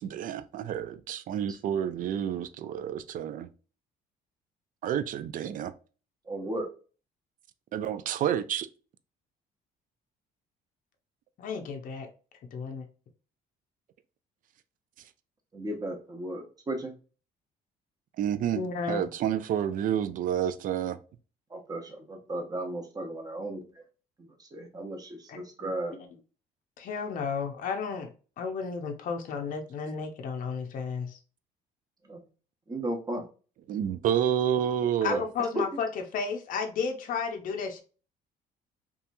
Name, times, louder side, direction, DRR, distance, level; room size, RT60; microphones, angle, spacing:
voice 1, 0.0-3.5 4.8-5.7 7.7-8.7 18.2-18.6 18.9-21.0 33.7-35.2, right 9 dB, 55° right, 0.4 m, -29 dB
voice 2, 6.3-6.7 15.5-16.9 21.5-23.6 24.2-25.1 25.3-25.9 32.1-32.2 32.7-33.2 35.1-35.2, right 1 dB, 20° right, 0.8 m, -35 dB
voice 3, 11.4-12.1 12.5-12.9 18.5-19.1 25.3-25.7 26.8-28.1 28.4-31.2 35.0-37.8, left 5 dB, 55° left, 0.6 m, -33 dB
2.8 x 2.3 x 2.5 m
cardioid pair, 110°, 17 cm